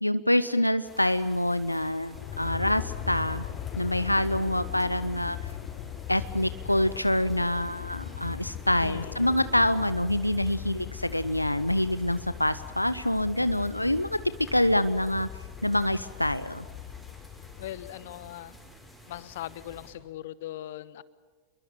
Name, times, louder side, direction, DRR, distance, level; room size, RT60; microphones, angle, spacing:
voice 1, 0.0-3.4 3.8-5.4 6.1-14.2 14.5-15.3 15.6-16.6, left 1 dB, 85° left, 14 dB, 0.7 m, -26 dB
sound 1, 0.8-19.9, equal, 5° left, 6.5 m, -51 dB
Aircraft, 2.1-18.3, left 10 dB, 35° left, 1.6 m, -40 dB
voice 2, 8.8-9.2 17.6-18.6 19.1-21.0, left 13 dB, 55° left, 18 dB, 1.1 m, -40 dB
28.5 x 22.5 x 7.3 m, 1.4 s
figure-of-eight pair, 90°, 0 cm